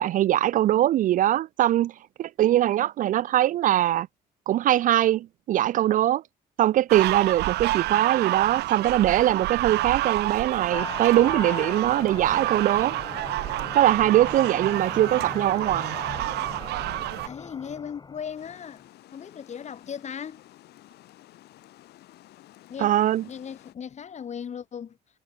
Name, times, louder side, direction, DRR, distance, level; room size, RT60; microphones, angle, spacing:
voice 1, 0.0-1.9 2.2-4.1 4.5-6.2 6.6-12.9 13.7-16.0 22.8-23.2, right 13 dB, 50° right, 0.4 m, -22 dB
sound 1, 6.9-17.3, right 17 dB, 80° right, 1.8 m, -29 dB
sound 2, 10.7-18.7, left 4 dB, 25° left, 2.6 m, -39 dB
voice 2, 17.2-18.8 19.1-20.4 22.7-22.9 23.3-25.0, left 7 dB, 40° left, 4.6 m, -37 dB
Water, 18.4-23.7, left 15 dB, 75° left, 3.7 m, -52 dB
cardioid pair, 110°, 17 cm